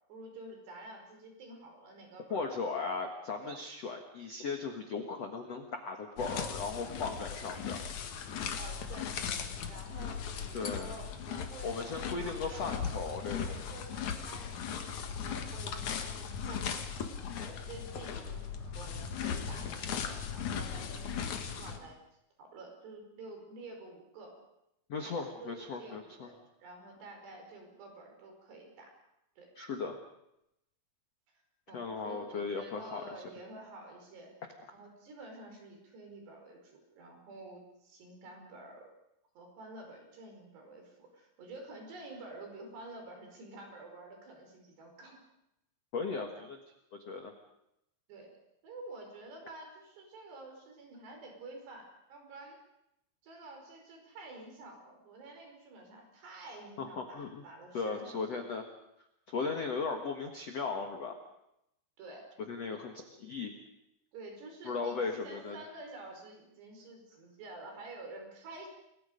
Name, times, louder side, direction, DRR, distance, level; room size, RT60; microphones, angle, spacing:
voice 1, 0.0-2.5 3.4-3.6 8.5-9.1 9.7-12.6 13.5-16.8 17.4-22.0 22.4-24.4 25.1-28.9 29.4-29.5 31.7-34.3 34.7-38.9 39.4-45.2 48.1-48.4 48.6-52.6 53.2-58.4 62.0-62.3 64.1-68.7, right 2 dB, 55° right, 2 dB, 7.0 m, -49 dB
voice 2, 2.3-7.8 10.5-10.9 11.6-13.5 24.9-26.3 29.5-30.0 31.7-33.0 45.9-46.6 47.0-47.3 56.8-57.4 57.7-58.6 59.3-61.2 62.5-63.5 64.6-65.6, left 4 dB, 85° left, 4 dB, 1.4 m, -37 dB
sound 1, 6.2-21.8, left 7 dB, 60° left, 2.0 m, -38 dB
29.5 x 21.5 x 5.2 m, 0.82 s
omnidirectional pair, 5.8 m